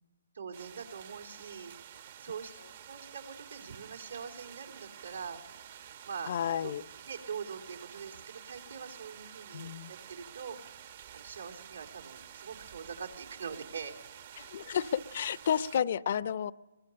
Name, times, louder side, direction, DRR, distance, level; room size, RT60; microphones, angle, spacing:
voice 1, 0.3-1.7 2.2-2.5 2.9-5.4 6.0-6.3 6.6-6.7 7.1-10.6 11.1-14.0, right 6 dB, 85° right, 0 dB, 3.6 m, -43 dB
sound 1, 0.5-15.8, right 9 dB, 50° right, 1.1 m, -50 dB
voice 2, 6.3-6.8 9.5-9.9 14.4-16.5, left 8 dB, 50° left, 17 dB, 0.7 m, -31 dB
22.5 x 21.0 x 6.9 m, 1.1 s
hypercardioid pair, 155°, 0 cm